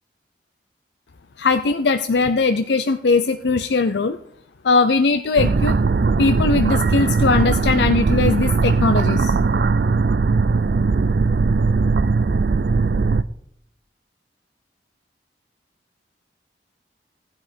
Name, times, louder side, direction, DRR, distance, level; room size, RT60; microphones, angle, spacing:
voice 1, 1.4-4.2 4.6-5.8 6.2-9.3, left 4 dB, 75° left, 9 dB, 0.6 m, -19 dB
sound 1, 5.4-13.2, right 4 dB, 60° right, 0.4 m, -19 dB
15.5 x 10.0 x 4.4 m, 0.74 s
head